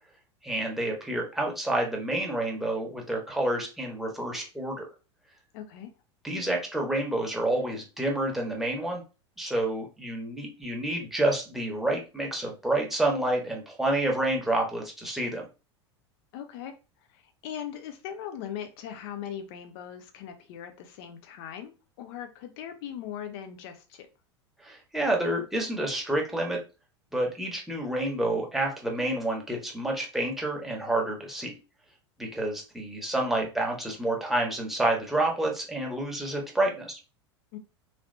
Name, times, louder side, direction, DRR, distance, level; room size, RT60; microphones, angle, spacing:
voice 1, 0.4-4.8 6.2-9.0 9.4-15.4 24.6-26.6 27.1-31.5 32.2-37.0, right 1 dB, ahead, -1 dB, 1.2 m, -29 dB
voice 2, 5.5-5.9 16.3-16.7 17.1-24.1 37.5-37.6, left 9 dB, 55° left, 6 dB, 0.6 m, -40 dB
3.2 x 2.8 x 2.6 m, 0.31 s
hypercardioid pair, 85°, 15 cm